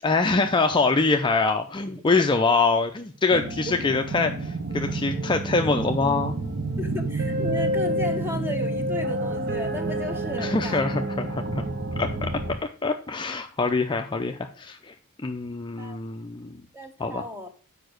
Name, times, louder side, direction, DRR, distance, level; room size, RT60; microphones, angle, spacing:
voice 1, 0.0-6.3 10.4-11.6 12.0-12.3 12.8-14.9 15.2-16.6 17.0-17.3, left 3 dB, 20° left, 0.5 m, -24 dB
voice 2, 3.3-3.8 6.8-10.9 15.8-16.0 16.7-17.5, left 2 dB, 10° right, 1.1 m, -34 dB
sound 1, 3.3-12.6, right 1 dB, 45° right, 0.8 m, -29 dB
6.8 x 5.2 x 6.2 m
head